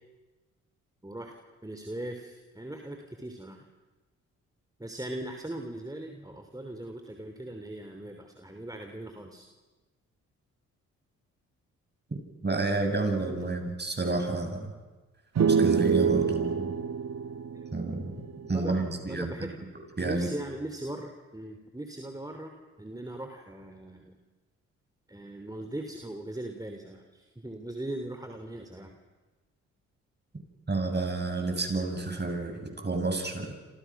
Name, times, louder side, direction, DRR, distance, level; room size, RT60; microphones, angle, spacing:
voice 1, 1.0-1.3 1.6-3.6 4.8-9.5 13.2-13.5 15.6-16.0 17.5-17.6 18.4-19.6 20.0-24.1 25.1-29.0, right 1 dB, 10° right, 4 dB, 3.3 m, -40 dB
voice 2, 12.4-14.7 15.5-16.7 17.7-18.1 18.5-19.3 20.0-20.3 30.7-33.5, right 3 dB, 30° right, 4 dB, 7.3 m, -30 dB
sound 1, 15.4-18.9, right 6 dB, 50° right, 1.6 m, -27 dB
28.5 x 27.0 x 6.2 m, 1.2 s
hypercardioid pair, 45°, 35 cm